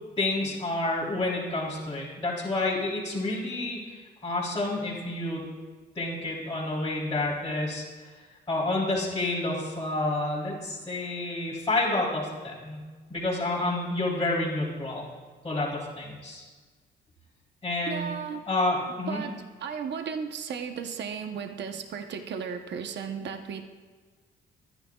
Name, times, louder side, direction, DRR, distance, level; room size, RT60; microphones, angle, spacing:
voice 1, 0.2-5.4 5.9-8.1 8.5-12.8 13.1-15.0 15.4-16.5 17.6-18.1 18.5-19.2, left 2 dB, 25° left, -9 dB, 3.2 m, -29 dB
voice 2, 17.9-18.4 19.1-23.7, right 6 dB, 60° right, 5 dB, 0.9 m, -35 dB
24.5 x 10.0 x 2.4 m, 1.4 s
cardioid pair, 90°, 20 cm